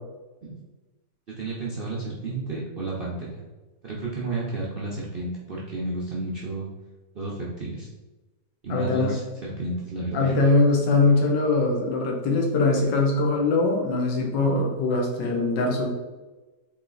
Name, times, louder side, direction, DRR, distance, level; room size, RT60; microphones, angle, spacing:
voice 1, 1.4-3.4 3.8-6.7 7.1-7.9 8.6-10.4, right 2 dB, 65° right, -5 dB, 0.5 m, -32 dB
voice 2, 8.7-9.1 10.1-15.9, left 3 dB, 85° left, 0 dB, 1.5 m, -22 dB
4.1 x 3.1 x 3.8 m, 1.2 s
omnidirectional pair, 1.9 m